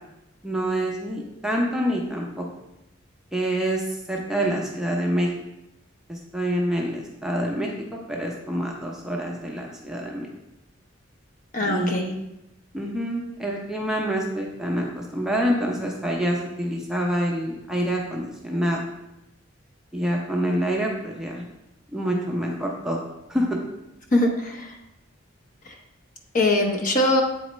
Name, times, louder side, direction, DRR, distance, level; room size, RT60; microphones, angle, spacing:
voice 1, 0.4-2.5 3.3-5.3 6.1-10.3 11.6-12.1 12.7-18.9 19.9-21.4 21.9-23.0 23.3-23.5, equal, 5° right, -1 dB, 0.6 m, -26 dB
voice 2, 11.5-12.1 24.1-24.7 25.6-25.7 26.3-27.2, left 1 dB, 40° left, 1 dB, 0.8 m, -22 dB
8.0 x 4.2 x 3.1 m, 0.90 s
head